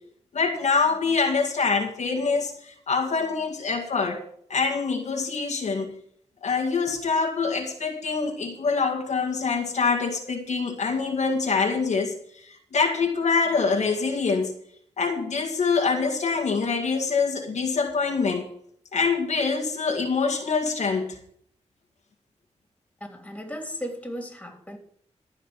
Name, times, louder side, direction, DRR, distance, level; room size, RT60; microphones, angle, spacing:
voice 1, 0.3-4.2 4.5-5.9 6.4-12.1 12.4-14.5 15.0-18.5 18.9-21.2, left 4 dB, 85° left, 2.0 m, -25 dB
voice 2, 23.0-24.8, equal, 10° left, 3.2 m, -36 dB
14.5 x 5.1 x 8.5 m
cardioid pair, 80°, 12 cm